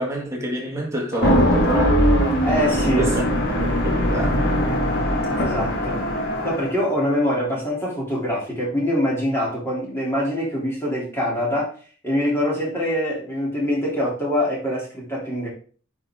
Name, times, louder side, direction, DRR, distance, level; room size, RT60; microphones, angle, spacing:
voice 1, 0.0-2.0 2.5-2.7 3.0-3.3 3.6-4.5, right 1 dB, 15° right, 2.0 m, -27 dB
sound 1, 1.1-6.8, equal, 50° left, 2.2 m, -20 dB
voice 2, 2.4-3.1 5.4-6.0 6.4-11.7 12.0-15.5, equal, 10° left, 3.3 m, -24 dB
9.3 x 5.1 x 3.7 m
head